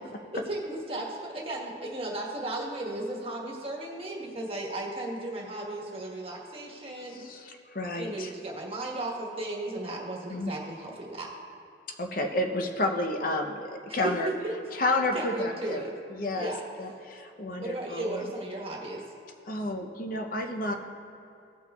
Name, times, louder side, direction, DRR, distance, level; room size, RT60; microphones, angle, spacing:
voice 1, 0.3-7.2 8.0-11.3 13.9-14.5 15.1-16.0 16.4-16.6 17.6-19.0, right 2 dB, 30° right, -2 dB, 1.3 m, -35 dB
voice 2, 7.1-8.3 10.3-10.5 12.0-14.3 14.7-15.8 16.1-16.5 16.8-18.3 19.5-20.7, left 2 dB, 45° left, 3 dB, 0.7 m, -31 dB
18.0 x 6.1 x 2.3 m, 2.7 s
head